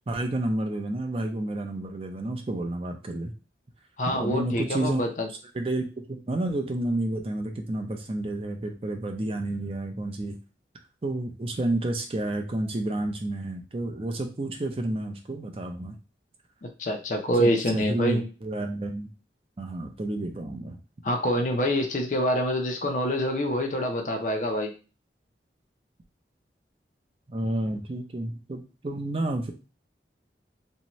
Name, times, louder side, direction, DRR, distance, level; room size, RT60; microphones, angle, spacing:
voice 1, 0.1-3.3 4.1-5.0 5.5-10.4 11.0-16.0 17.4-19.1 19.6-20.8 27.3-29.5, right 1 dB, 30° right, 4 dB, 0.4 m, -30 dB
voice 2, 4.0-5.3 16.8-18.3 21.0-24.7, equal, 45° left, 3 dB, 0.5 m, -26 dB
2.7 x 2.2 x 2.9 m, 0.33 s
head